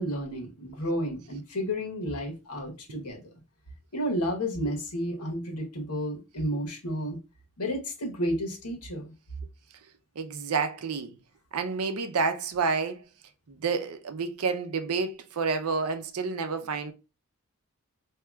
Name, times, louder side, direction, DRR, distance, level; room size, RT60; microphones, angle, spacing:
voice 1, 0.0-3.2 3.9-7.2 7.6-9.1, equal, 80° left, 1.1 m, -31 dB
voice 2, 10.2-11.1 11.5-13.0 13.5-16.9, right 4 dB, 75° right, 0.5 m, -29 dB
4.4 x 2.8 x 2.3 m
head